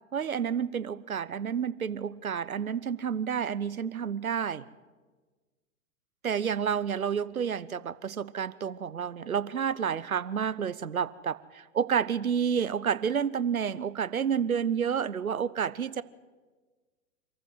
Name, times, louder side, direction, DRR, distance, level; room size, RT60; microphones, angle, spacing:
voice 1, 0.1-4.6 6.2-16.0, right 7 dB, 85° right, 18 dB, 1.0 m, -30 dB
26.5 x 14.5 x 7.9 m, 1.4 s
figure-of-eight pair, 110°, 41 cm